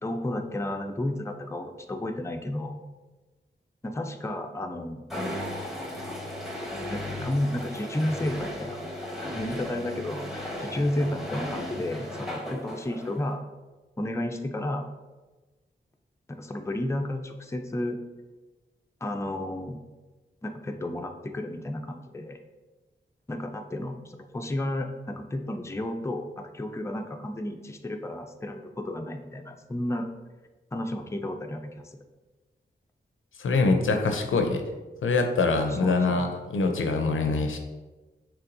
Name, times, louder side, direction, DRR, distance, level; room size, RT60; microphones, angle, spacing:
voice 1, 0.0-2.8 3.8-5.0 6.9-13.4 14.0-14.9 16.3-18.0 19.0-19.8 20.4-22.4 23.3-30.1 30.7-32.0 35.6-36.3, left 1 dB, 15° left, 5 dB, 0.4 m, -32 dB
sound 1, 5.1-13.3, left 1 dB, ahead, 1.1 m, -36 dB
voice 2, 33.4-34.6 35.0-37.6, left 3 dB, 85° left, 5 dB, 0.5 m, -24 dB
5.7 x 3.4 x 2.6 m, 1.2 s
cardioid pair, 50°, 20 cm